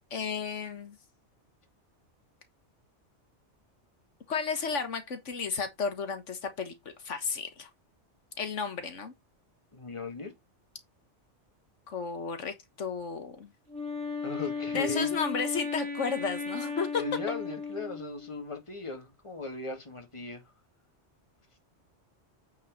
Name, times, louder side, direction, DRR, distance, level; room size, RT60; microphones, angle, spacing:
voice 1, 0.1-1.0 4.3-6.7 7.0-7.7 8.4-9.1 11.9-13.5 14.7-17.3, left 5 dB, 85° left, 1.8 m, -33 dB
voice 2, 9.7-10.3 14.2-15.1 17.0-20.4, left 3 dB, 25° left, 2.1 m, -37 dB
Wind instrument woodwind instrument, 13.7-18.4, left 4 dB, 60° right, 2.1 m, -35 dB
8.8 x 5.7 x 4.0 m
omnidirectional pair, 1.2 m